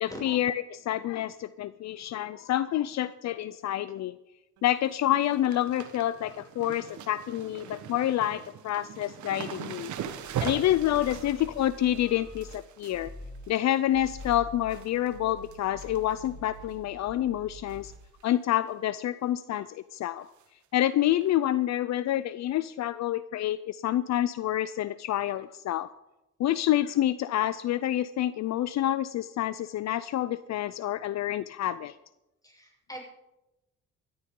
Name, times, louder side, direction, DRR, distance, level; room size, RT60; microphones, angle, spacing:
voice 1, 0.0-4.2 4.6-9.9 10.4-13.1 13.5-17.9 18.2-20.3 20.7-25.9 26.4-32.0, left 13 dB, 65° left, 15 dB, 0.5 m, -28 dB
sound 1, 4.6-4.9 5.1-14.4 14.7-15.1 15.4-16.3 16.6-16.7 17.7-17.9 18.2-18.3 18.7-18.8 20.4-20.5 21.2-21.3, right 9 dB, 70° right, 1.3 m, -41 dB
sound 2, 10.0-12.5 12.9-13.4 13.8-18.1, left 1 dB, 20° right, 5.0 m, -46 dB
voice 2, 32.4-33.0, equal, 10° left, -1 dB, 6.6 m, -42 dB
18.5 x 13.5 x 3.8 m, 0.95 s
cardioid pair, 90°, 30 cm